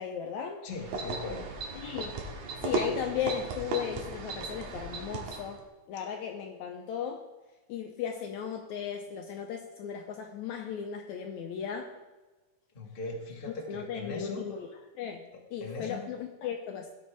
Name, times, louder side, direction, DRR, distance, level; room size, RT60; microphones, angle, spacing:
voice 1, 0.0-0.6 1.8-2.2 2.6-5.6 5.9-7.2 7.7-12.0 13.5-14.7 15.0-15.2 15.5-16.9, left 8 dB, 75° left, 4 dB, 1.8 m, -36 dB
voice 2, 0.6-1.5 12.7-14.4 15.6-16.1, left 3 dB, 35° left, 0 dB, 0.8 m, -39 dB
sound 1, 0.7-5.6, right 3 dB, 80° right, 3.2 m, -36 dB
17.0 x 7.3 x 3.3 m, 1.2 s
omnidirectional pair, 3.9 m